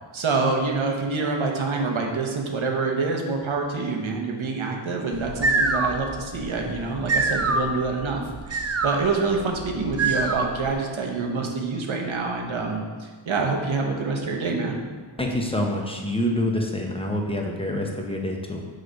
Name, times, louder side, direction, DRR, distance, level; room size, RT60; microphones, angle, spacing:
voice 1, 0.1-14.8, right 4 dB, 75° right, 1 dB, 1.0 m, -26 dB
sound 1, 5.1-10.7, right 3 dB, 35° right, 0.4 m, -26 dB
voice 2, 15.2-18.6, left 1 dB, 10° left, 0 dB, 0.7 m, -26 dB
6.4 x 3.2 x 5.1 m, 1.5 s
wide cardioid pair, 100°, 48 cm